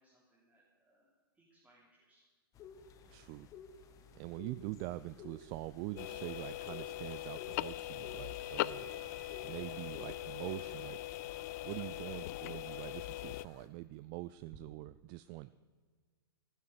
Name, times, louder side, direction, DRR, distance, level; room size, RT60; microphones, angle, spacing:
voice 1, 0.0-2.2 12.1-12.5, right 1 dB, 10° right, -6 dB, 3.3 m, -67 dB
sound 1, 2.6-13.7, left 5 dB, 25° left, 1.5 m, -55 dB
voice 2, 3.1-3.5 4.1-8.9 9.4-11.0 11.6-15.5, right 17 dB, 35° right, 16 dB, 0.4 m, -44 dB
sound 2, 6.0-13.5, left 17 dB, 45° left, 0.4 m, -41 dB
Sliding door, 6.1-14.6, right 4 dB, 60° right, 2.7 m, -63 dB
15.0 x 12.5 x 6.6 m, 1.5 s
hypercardioid pair, 120°, 13 cm